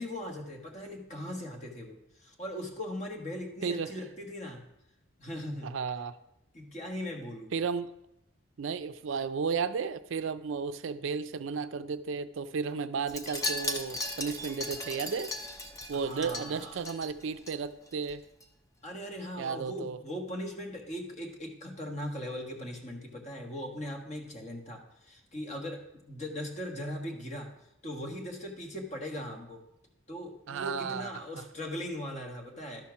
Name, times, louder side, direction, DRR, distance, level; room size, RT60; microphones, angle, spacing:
voice 1, 0.0-4.6 5.2-5.7 6.5-7.5 15.9-16.8 18.8-25.8 26.1-27.5 27.8-29.6 30.1-32.9, left 1 dB, 35° left, 1 dB, 1.4 m, -39 dB
voice 2, 3.6-3.9 5.6-6.2 7.5-7.9 8.6-15.3 15.9-18.2 19.4-20.0 30.5-31.1, right 5 dB, 70° right, 12 dB, 0.4 m, -33 dB
Wind chime, 13.1-17.6 17.9-18.1 18.4-18.5, left 2 dB, 15° left, 0.6 m, -37 dB
12.0 x 4.3 x 5.9 m, 0.84 s
head